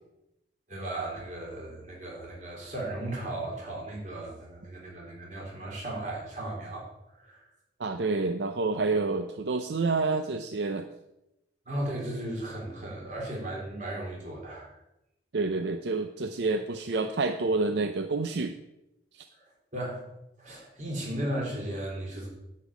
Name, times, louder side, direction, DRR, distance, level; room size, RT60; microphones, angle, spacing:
voice 1, 0.7-6.8 7.2-7.4 11.7-14.8 19.7-20.0 20.4-22.3, right 1 dB, 40° right, -2 dB, 3.7 m, -36 dB
voice 2, 7.8-10.9 15.3-18.6 19.1-19.3, right 3 dB, 75° right, 8 dB, 0.6 m, -28 dB
9.9 x 5.5 x 8.3 m, 0.89 s
head